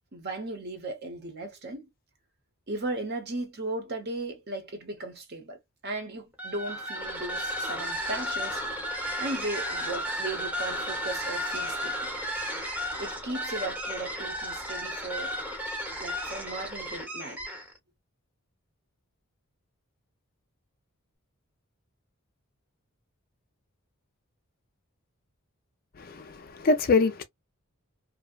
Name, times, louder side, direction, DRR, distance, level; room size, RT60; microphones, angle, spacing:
voice 1, 0.1-1.9 2.7-8.6 9.2-12.0 13.0-15.3 16.0-17.5, right 2 dB, 45° right, 0.8 m, -36 dB
sound 1, 6.3-17.8, equal, 5° right, 0.8 m, -33 dB
voice 2, 26.0-27.2, left 3 dB, 40° left, 0.4 m, -24 dB
2.6 x 2.1 x 2.3 m
head